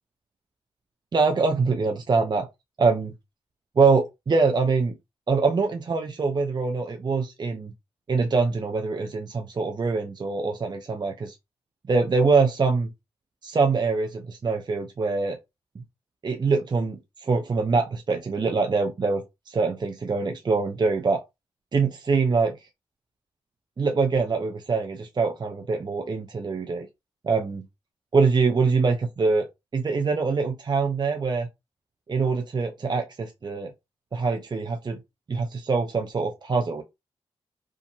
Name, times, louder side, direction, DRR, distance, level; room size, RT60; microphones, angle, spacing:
voice 1, 1.1-2.5 2.8-3.1 3.8-5.0 5.3-7.7 8.1-11.4 11.9-12.9 13.4-15.4 15.8-15.9 16.2-21.2 21.7-22.6 23.8-26.9 27.2-27.6 28.1-29.5 29.7-31.5 32.1-33.7 34.1-35.0 35.3-36.8, right 4 dB, 40° right, 0.6 m, -24 dB
2.6 x 2.5 x 2.7 m
supercardioid pair, 45°, 11 cm